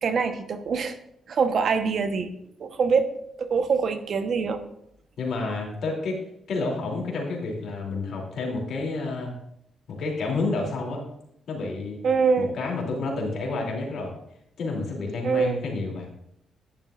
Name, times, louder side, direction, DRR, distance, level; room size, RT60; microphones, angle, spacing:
voice 1, 0.0-0.9 1.3-2.3 2.6-3.1 3.4-4.6 12.0-12.5 15.2-15.6, right 5 dB, 60° right, 8 dB, 1.0 m, -24 dB
voice 2, 5.2-6.2 6.5-9.3 9.9-11.0 11.5-12.0 12.4-14.1 14.6-16.1, left 3 dB, 70° left, -1 dB, 2.9 m, -29 dB
10.5 x 10.5 x 2.5 m, 0.74 s
supercardioid pair, 55°, 0 cm